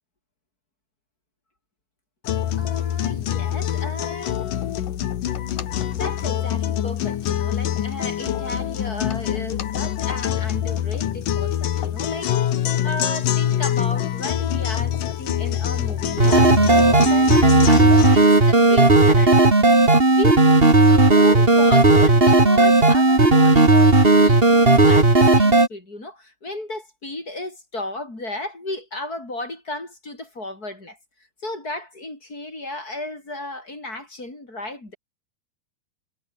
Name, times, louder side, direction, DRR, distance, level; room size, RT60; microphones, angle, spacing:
sound 1, 2.2-18.2, left 11 dB, 65° left, 3.1 m, -25 dB
voice 1, 2.5-4.4 5.9-12.3 12.8-19.4 20.1-20.4 20.9-31.0 31.4-34.9, left 2 dB, 20° left, 6.8 m, -34 dB
sound 2, 16.2-25.7, right 2 dB, 15° right, 3.1 m, -14 dB
omnidirectional pair, 4.4 m